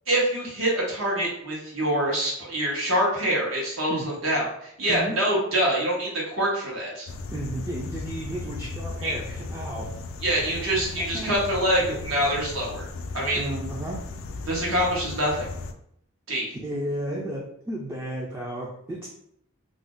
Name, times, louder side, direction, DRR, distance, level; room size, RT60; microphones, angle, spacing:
voice 1, 0.1-7.1 9.0-9.1 10.2-12.9 13.1-13.5 14.5-15.5 16.3-16.5, right 1 dB, 80° right, -3 dB, 1.0 m, -25 dB
sound 1, 7.1-15.7, left 3 dB, 75° left, 0.3 m, -36 dB
voice 2, 7.3-9.9 10.5-10.6 11.0-11.3 13.3-14.0 16.6-19.1, right 1 dB, 10° right, -3 dB, 0.3 m, -33 dB
2.5 x 2.0 x 3.6 m, 0.71 s
head